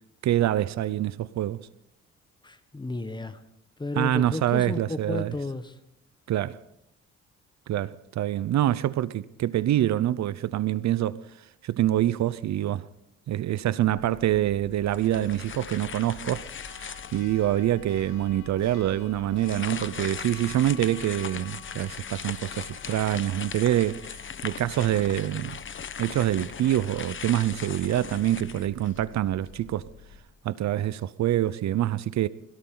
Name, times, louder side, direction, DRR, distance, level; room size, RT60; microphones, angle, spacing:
voice 1, 0.2-1.6 4.0-5.3 6.3-6.6 7.7-11.2 11.6-12.9 13.3-24.2 24.4-25.6 26.0-29.8 30.4-32.3, right 12 dB, 65° right, 0.7 m, -26 dB
voice 2, 2.4-3.4 3.8-5.8, left 2 dB, 15° left, 1.3 m, -33 dB
Church bell, 13.9-30.2, left 7 dB, 90° left, 3.4 m, -47 dB
sound 1, 14.9-17.4 18.0-18.1 19.4-29.2, left 7 dB, 40° left, 1.1 m, -39 dB
22.0 x 17.0 x 3.9 m
cardioid pair, 90°, 30 cm